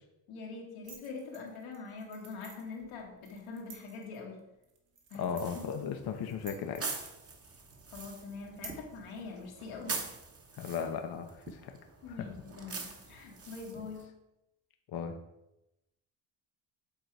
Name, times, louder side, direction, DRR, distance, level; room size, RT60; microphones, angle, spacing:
voice 1, 0.3-4.4 5.1-5.9 7.9-10.0 12.0-14.1, left 4 dB, 85° left, 0 dB, 1.8 m, -44 dB
sound 1, 0.8-8.7, right 5 dB, 60° right, 1.6 m, -54 dB
voice 2, 5.1-6.8 10.5-11.7 12.1-12.3 14.9-15.2, left 7 dB, 50° left, 5 dB, 0.7 m, -36 dB
sound 2, 5.4-14.0, right 4 dB, 30° right, 1.1 m, -44 dB
7.9 x 3.8 x 4.6 m, 0.91 s
cardioid pair, 90°, 48 cm